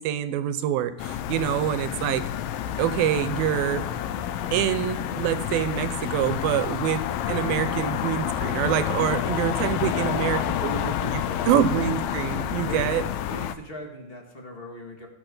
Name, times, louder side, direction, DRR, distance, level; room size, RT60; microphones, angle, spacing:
voice 1, 0.0-2.2 2.8-3.8 4.5-11.2 11.5-13.0, right 10 dB, 75° right, 11 dB, 2.4 m, -26 dB
sound 1, 1.0-13.5, left 10 dB, 80° left, 2.2 m, -29 dB
Wind instrument woodwind instrument, 3.7-8.2, left 3 dB, 25° right, 1.0 m, -46 dB
voice 2, 9.9-11.5 12.6-12.9 13.3-15.1, left 1 dB, 35° left, 1 dB, 0.9 m, -40 dB
20.0 x 6.9 x 3.9 m, 0.93 s
omnidirectional pair, 4.5 m